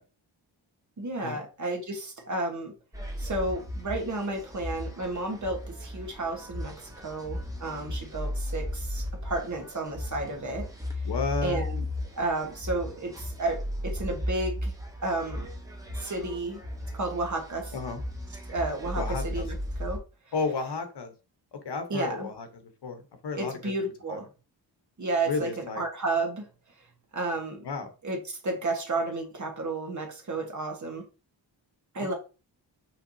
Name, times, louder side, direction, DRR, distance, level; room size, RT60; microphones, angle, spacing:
voice 1, 1.0-2.7 3.2-10.7 11.0-11.1 11.4-11.8 12.2-14.7 15.0-15.5 15.9-16.6 16.9-17.7 18.5-20.0 21.9-22.3 23.3-24.2 25.0-26.5 27.1-27.6 28.0-31.0 31.9-32.1, right 2 dB, 40° right, 3 dB, 1.2 m, -32 dB
sound 1, 2.9-20.0, left 1 dB, 10° right, 0.8 m, -35 dB
voice 2, 11.0-11.6 17.7-18.0 19.0-19.5 20.3-21.1 21.5-23.6 24.1-24.2 25.3-25.8 27.6-27.9 32.0-32.1, left 4 dB, 60° left, 7 dB, 1.0 m, -32 dB
5.8 x 3.3 x 2.6 m, 0.33 s
wide cardioid pair, 145°, 46 cm